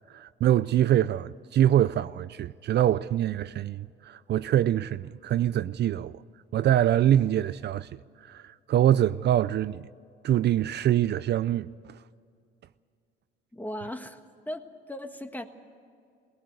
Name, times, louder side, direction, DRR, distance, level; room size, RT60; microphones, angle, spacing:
voice 1, 0.1-6.1 6.5-7.9 8.2-9.9 10.2-11.7, right 11 dB, 60° right, 0.4 m, -24 dB
voice 2, 13.5-14.2 14.5-15.5, left 1 dB, 10° left, 1.5 m, -37 dB
19.0 x 18.0 x 8.0 m
cardioid pair, 90°, 20 cm